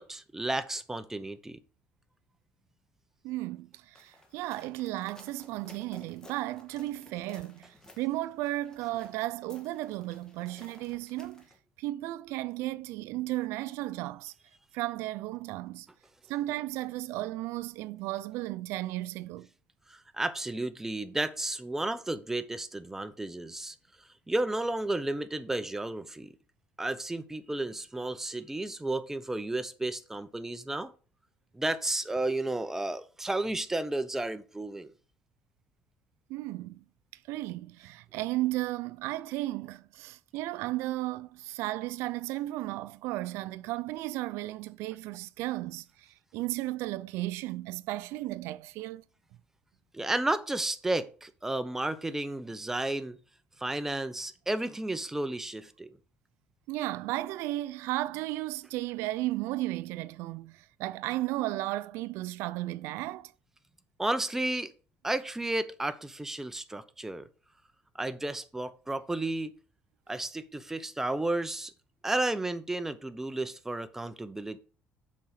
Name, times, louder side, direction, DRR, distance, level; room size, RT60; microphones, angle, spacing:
voice 1, 0.0-1.6 19.9-23.7 24.3-26.3 26.8-30.9 31.5-34.9 49.9-53.2 53.6-56.0 64.0-64.7 65.0-67.3 68.0-69.5 70.1-71.7 72.0-74.6, right 2 dB, 10° right, 0.8 m, -32 dB
voice 2, 3.2-11.5 11.8-14.3 14.7-15.9 16.3-19.5 36.3-36.8 37.1-49.0 56.7-63.3, right 17 dB, 85° right, 0.3 m, -34 dB
sound 1, 4.0-11.6, left 2 dB, 15° left, 1.8 m, -56 dB
7.5 x 4.8 x 5.8 m
cardioid pair, 125°, 4 cm